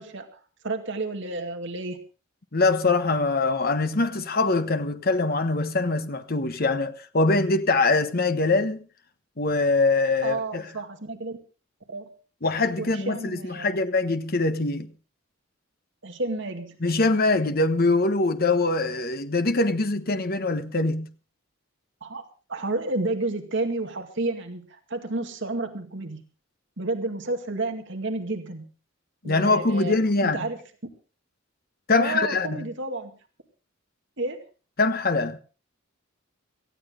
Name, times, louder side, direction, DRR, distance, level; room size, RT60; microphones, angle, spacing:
voice 1, 0.0-2.0 10.2-11.4 11.9-12.1 12.8-13.8 16.0-16.8 22.0-22.2 22.5-26.2 26.8-28.7 29.2-30.6 32.0-33.2 34.2-34.4, right 2 dB, 60° right, 2.2 m, -31 dB
voice 2, 2.5-8.8 9.4-10.6 12.4-14.9 16.8-21.1 29.2-30.5 31.9-32.7 34.8-35.4, left 3 dB, 45° left, 1.2 m, -23 dB
18.5 x 15.0 x 3.8 m
head